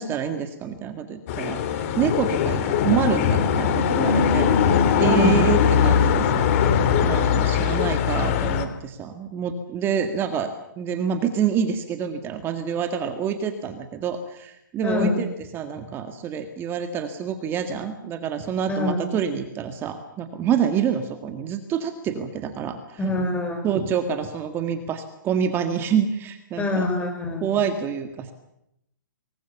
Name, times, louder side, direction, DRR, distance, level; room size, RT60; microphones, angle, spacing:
voice 1, 0.0-4.5 5.0-15.3 15.5-23.0 23.6-26.9 27.4-28.3, right 8 dB, 20° right, 7 dB, 1.8 m, -27 dB
sound 1, 1.3-8.6, left 7 dB, 40° left, 2.8 m, -21 dB
voice 2, 5.0-5.4 14.8-15.2 18.7-19.0 23.0-23.6 26.6-27.4, left 2 dB, 10° left, 4 dB, 5.4 m, -24 dB
26.0 x 20.5 x 7.1 m, 0.82 s
hypercardioid pair, 140°, 11 cm